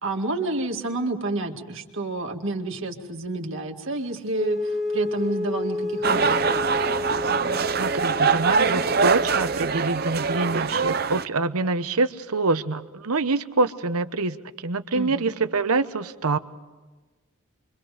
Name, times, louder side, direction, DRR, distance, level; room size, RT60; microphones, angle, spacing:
voice 1, 0.0-6.5 14.9-15.3, right 2 dB, 60° right, 3 dB, 2.1 m, -29 dB
Wind instrument woodwind instrument, 4.3-9.6, left 3 dB, ahead, 1.2 m, -30 dB
sound 1, 6.0-11.2, right 5 dB, 45° right, 0.7 m, -23 dB
voice 2, 7.6-16.4, right 3 dB, 85° right, 11 dB, 1.0 m, -26 dB
28.5 x 24.0 x 5.0 m, 1.3 s
head